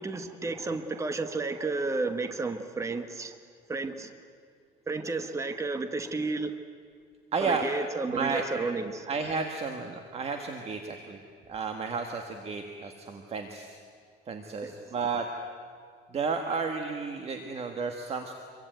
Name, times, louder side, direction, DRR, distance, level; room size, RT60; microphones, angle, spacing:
voice 1, 0.0-3.4 3.7-4.1 4.9-6.6 7.4-9.1 14.6-14.8, right 3 dB, 15° right, 8 dB, 1.3 m, -32 dB
voice 2, 7.3-7.6 8.1-8.4 9.1-11.2 11.5-13.8 14.3-15.2 16.1-18.3, right 5 dB, 30° right, 5 dB, 1.7 m, -32 dB
26.5 x 23.5 x 9.3 m, 2.2 s
cardioid pair, 155°, 19 cm